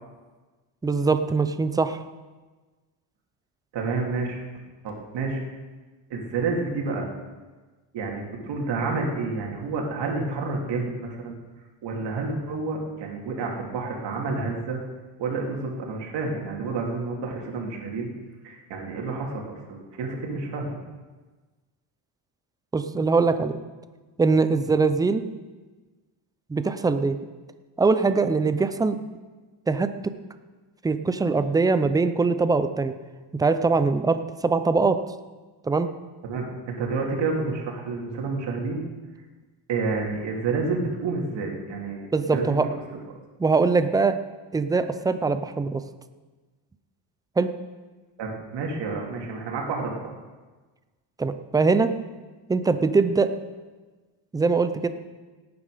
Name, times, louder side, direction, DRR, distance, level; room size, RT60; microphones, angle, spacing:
voice 1, 0.8-2.0 22.7-23.6 24.2-25.2 26.5-27.2 27.8-29.0 29.7-29.9 30.8-32.9 33.4-35.0 35.6-35.9 42.1-42.7 43.4-44.2 44.5-45.8 47.4-47.5 51.2-51.9 52.5-53.3 54.3-54.9, right 4 dB, 10° right, 10 dB, 0.3 m, -22 dB
voice 2, 3.7-4.4 4.8-5.4 6.1-7.1 7.9-11.3 11.8-14.8 15.2-18.1 18.4-20.8 36.2-38.9 39.7-42.1 42.3-42.6 48.2-50.1, right 3 dB, 60° right, 0 dB, 2.9 m, -29 dB
17.5 x 9.4 x 5.0 m, 1.3 s
cardioid pair, 150°, 48 cm